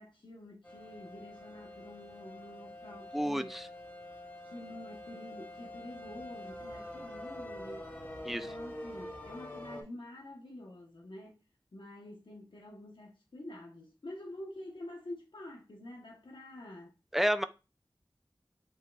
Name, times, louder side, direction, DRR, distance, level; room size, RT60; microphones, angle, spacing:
voice 1, 0.0-3.6 4.4-7.9 8.3-11.4 11.7-16.9, left 1 dB, 65° left, 1.0 m, -48 dB
sound 1, 0.6-9.8, left 1 dB, 20° left, 1.1 m, -46 dB
voice 2, 3.1-3.7 8.3-8.5 17.1-17.5, equal, 5° right, 0.4 m, -30 dB
5.3 x 3.9 x 2.3 m
wide cardioid pair, 65°, 9 cm